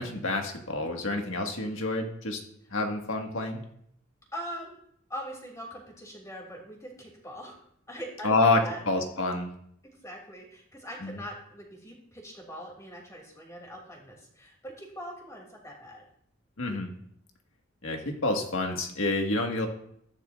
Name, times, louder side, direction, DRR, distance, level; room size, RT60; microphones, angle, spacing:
voice 1, 0.0-2.4 2.7-3.6 8.2-9.5 11.0-11.1 16.6-16.9 17.8-19.7, left 2 dB, 75° left, 2 dB, 1.7 m, -28 dB
voice 2, 4.3-4.8 5.1-8.8 10.0-16.0, equal, 15° left, -1 dB, 2.7 m, -42 dB
14.5 x 11.0 x 2.5 m, 0.67 s
head